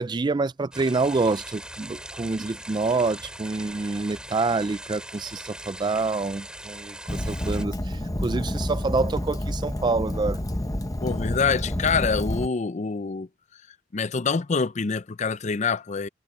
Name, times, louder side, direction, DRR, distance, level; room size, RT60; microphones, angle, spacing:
voice 1, 0.0-10.4, right 3 dB, 25° right, 0.4 m, -27 dB
sound 1, 0.7-7.7, right 1 dB, 5° right, 6.2 m, -41 dB
Fire, 7.1-12.5, left 1 dB, 20° left, 1.1 m, -29 dB
voice 2, 11.0-13.3 13.9-16.1, left 5 dB, 40° left, 0.5 m, -26 dB
head